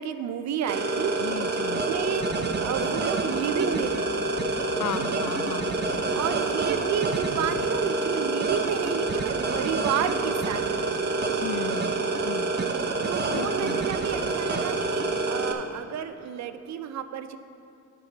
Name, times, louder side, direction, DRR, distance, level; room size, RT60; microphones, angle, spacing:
voice 1, 0.0-1.1 1.6-4.5 5.1-5.3 6.1-11.3 13.0-17.4, right 8 dB, 65° right, 10 dB, 0.6 m, -32 dB
sound 1, 0.7-15.5, right 3 dB, 35° right, 0.9 m, -27 dB
voice 2, 1.2-1.9 4.7-6.3 11.4-12.6 13.3-13.8, left 12 dB, 75° left, 14 dB, 0.5 m, -36 dB
14.0 x 5.6 x 4.0 m, 2.7 s
cardioid pair, 90°, 30 cm